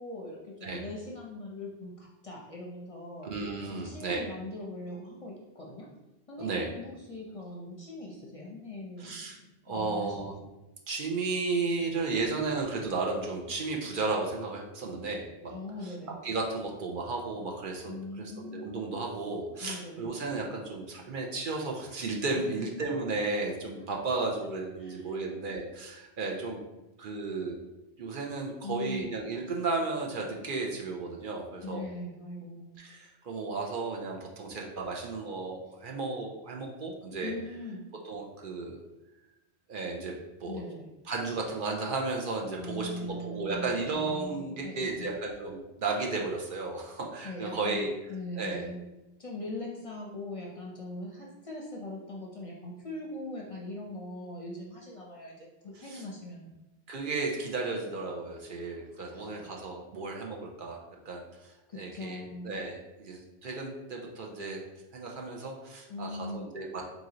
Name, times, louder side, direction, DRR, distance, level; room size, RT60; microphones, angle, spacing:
voice 1, 0.0-3.3 3.7-5.9 6.3-10.3 15.5-16.1 17.9-18.8 19.6-20.1 22.3-22.7 24.1-24.2 24.8-25.2 28.6-29.1 31.6-32.7 37.2-37.8 40.5-40.9 42.6-45.1 47.2-48.8 49.2-56.5 58.6-58.7 59.1-59.5 61.7-62.6 65.9-66.5, left 2 dB, 40° left, -3 dB, 0.6 m, -41 dB
voice 2, 3.2-4.2 6.4-6.7 9.0-9.4 9.7-10.3 10.9-15.5 15.8-15.9 16.2-26.6 27.0-27.6 28.0-31.8 32.8-37.3 38.0-38.8 39.7-40.1 40.4-40.6 41.1-47.9 48.4-48.7 55.9-56.0 56.9-60.8 61.1-64.6 64.9-66.8, right 3 dB, 60° right, 0 dB, 0.7 m, -34 dB
3.8 x 3.0 x 3.7 m, 0.99 s
omnidirectional pair, 1.1 m